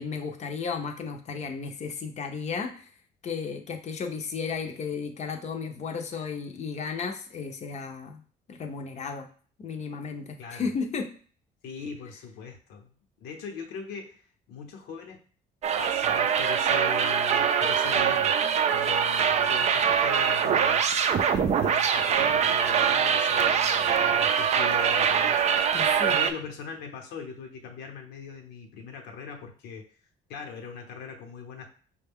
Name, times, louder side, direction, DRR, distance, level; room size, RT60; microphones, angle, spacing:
voice 1, 0.0-2.9 3.2-8.2 8.5-9.3 9.6-11.1 25.7-26.3, left 5 dB, 45° left, 5 dB, 0.6 m, -34 dB
voice 2, 11.6-12.9 13.2-14.2 14.5-15.2 15.8-18.4 18.7-20.8 21.3-25.6 26.0-29.9 30.3-31.7, left 5 dB, 80° left, 2 dB, 0.9 m, -40 dB
sound 1, 15.6-26.3, right 7 dB, 40° right, 0.4 m, -23 dB
5.1 x 2.2 x 3.5 m, 0.43 s
cardioid pair, 110°, 17 cm